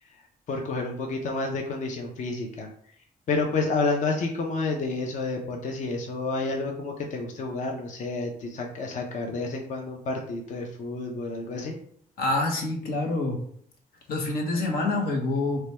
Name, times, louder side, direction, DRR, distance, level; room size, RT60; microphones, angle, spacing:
voice 1, 0.5-2.7 3.3-11.8, left 3 dB, 55° left, 2 dB, 0.6 m, -30 dB
voice 2, 12.2-13.4 14.1-15.6, left 2 dB, 85° left, 2 dB, 0.9 m, -26 dB
3.1 x 2.2 x 4.2 m, 0.63 s
cardioid pair, 105°, 15 cm